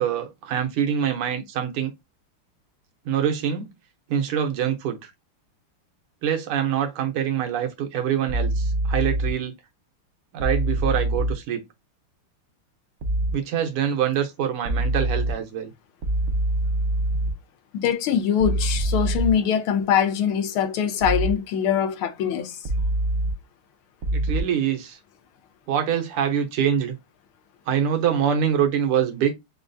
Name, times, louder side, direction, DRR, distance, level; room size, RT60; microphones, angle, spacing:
voice 1, 0.0-1.9 3.1-3.7 4.1-5.1 6.2-9.5 10.3-11.6 13.3-15.7 24.1-25.0 25.7-27.0 27.7-29.3, right 9 dB, 85° right, 1.8 m, -24 dB
sound 1, 8.3-9.3 10.4-11.3 13.0-13.3 14.7-15.3 16.0-17.3 18.4-19.3 21.0-21.3 22.7-23.3 24.0-24.4, right 1 dB, 65° right, 0.9 m, -24 dB
voice 2, 17.7-22.6, left 8 dB, 75° left, 1.5 m, -23 dB
5.8 x 2.3 x 2.5 m
omnidirectional pair, 2.4 m